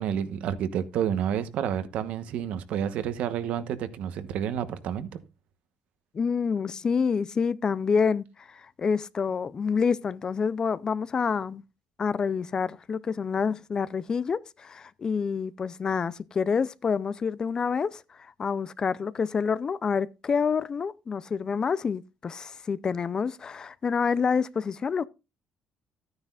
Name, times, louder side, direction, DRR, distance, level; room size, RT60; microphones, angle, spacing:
voice 1, 0.0-5.2, right 9 dB, 75° right, 1.0 m, -30 dB
voice 2, 6.1-11.6 12.0-18.0 18.4-25.1, left 6 dB, 30° left, 0.4 m, -27 dB
13.5 x 9.6 x 2.4 m
cardioid pair, 130°, 2 cm